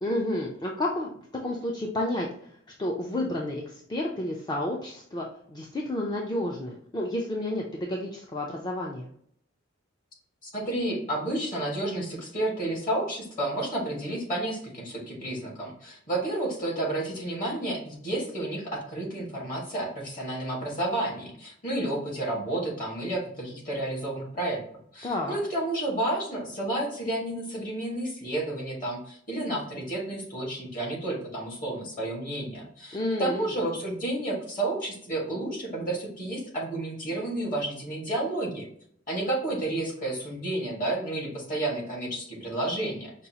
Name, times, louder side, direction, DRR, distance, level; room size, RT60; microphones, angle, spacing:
voice 1, 0.0-2.5 2.8-9.1 25.0-25.4 32.9-33.5, left 1 dB, 20° left, -2 dB, 0.4 m, -31 dB
voice 2, 10.4-24.6 24.9-38.7 39.1-43.1, right 1 dB, 45° left, -2 dB, 1.6 m, -31 dB
5.3 x 2.3 x 2.8 m, 0.65 s
head